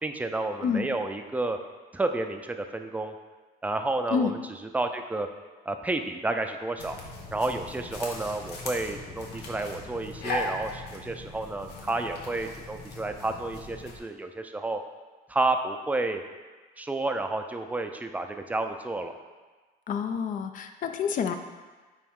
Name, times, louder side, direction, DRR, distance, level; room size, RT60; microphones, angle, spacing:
voice 1, 0.0-1.6 1.9-3.1 3.6-4.4 4.7-5.3 5.7-7.0 7.3-14.8 15.3-16.2 16.8-19.2, right 2 dB, 10° right, 6 dB, 0.4 m, -30 dB
sound 1, 6.8-14.0, left 2 dB, 80° left, 1.1 m, -38 dB
voice 2, 19.9-21.4, left 6 dB, 50° left, 7 dB, 0.5 m, -28 dB
9.1 x 3.1 x 3.6 m, 1.3 s
cardioid pair, 110°, 17 cm